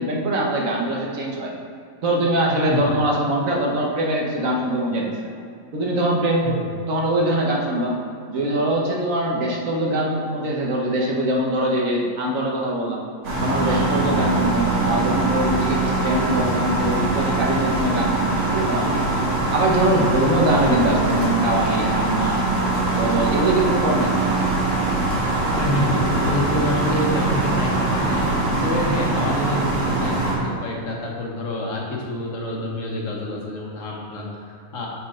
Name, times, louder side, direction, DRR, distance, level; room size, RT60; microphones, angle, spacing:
voice 1, 0.0-1.5 2.0-5.1 5.7-7.9 8.3-13.0 13.4-19.0 19.5-22.4 22.9-24.3, right 1 dB, 85° right, -2 dB, 1.5 m, -22 dB
sound 1, 13.2-30.3, right 2 dB, 65° right, 1.7 m, -22 dB
voice 2, 25.5-28.2 28.6-34.9, left 1 dB, 75° left, -2 dB, 1.5 m, -27 dB
6.6 x 4.2 x 5.0 m, 2.4 s
omnidirectional pair, 1.4 m